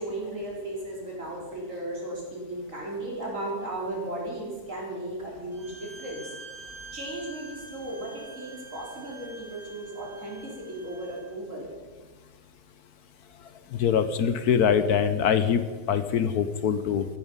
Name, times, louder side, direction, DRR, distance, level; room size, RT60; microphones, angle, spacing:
voice 1, 0.0-6.3 6.9-11.7, right 1 dB, 50° right, -3 dB, 4.6 m, -35 dB
Bowed string instrument, 5.5-11.3, right 3 dB, ahead, 4.6 m, -46 dB
voice 2, 13.7-17.1, left 7 dB, 75° left, 12 dB, 1.4 m, -23 dB
15.5 x 12.5 x 5.5 m, 1.4 s
omnidirectional pair, 1.7 m